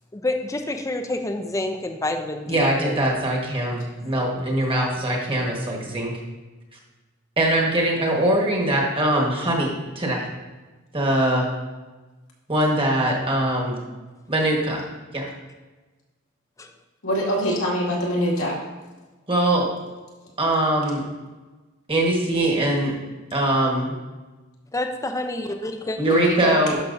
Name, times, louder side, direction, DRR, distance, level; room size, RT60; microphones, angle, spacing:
voice 1, 0.1-3.3 4.7-4.9 16.6-16.7 24.7-26.0, left 1 dB, 15° left, 5 dB, 0.5 m, -28 dB
voice 2, 2.5-6.1 7.4-10.3 10.9-11.5 12.5-13.8 14.3-14.8 15.1-15.3 19.3-19.7 20.4-21.0 21.9-22.9 23.3-24.0 26.0-26.8, right 1 dB, 25° right, -1 dB, 1.4 m, -22 dB
voice 3, 17.0-18.6 26.1-26.6, equal, 85° left, -4 dB, 2.1 m, -23 dB
11.5 x 5.9 x 2.6 m, 1.2 s
head